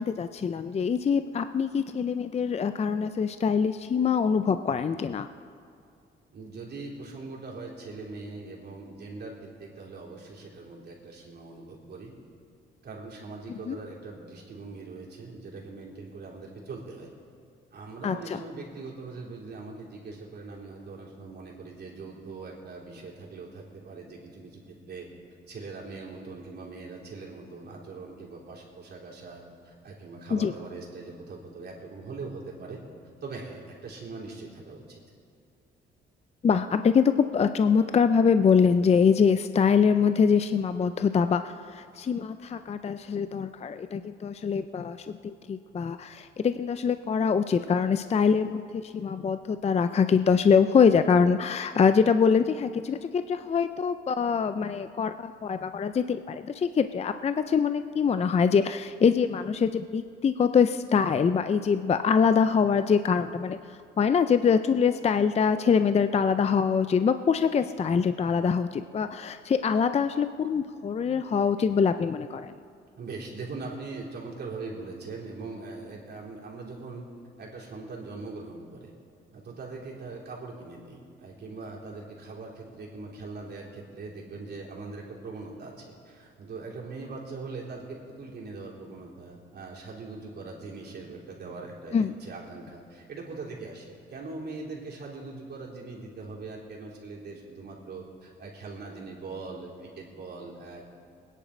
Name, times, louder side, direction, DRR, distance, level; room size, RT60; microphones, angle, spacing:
voice 1, 0.0-5.3 13.5-13.8 18.0-18.4 30.3-30.5 36.4-45.0 45.2-63.6 64.0-72.5 91.9-92.1, left 6 dB, 35° left, 10 dB, 0.5 m, -24 dB
voice 2, 6.3-12.1 12.8-17.1 17.7-25.1 25.5-32.8 33.2-35.0 73.0-77.1 77.4-78.9 79.3-100.8, right 3 dB, 55° right, -3 dB, 3.8 m, -41 dB
21.5 x 10.0 x 5.1 m, 2.4 s
cardioid pair, 90°, 20 cm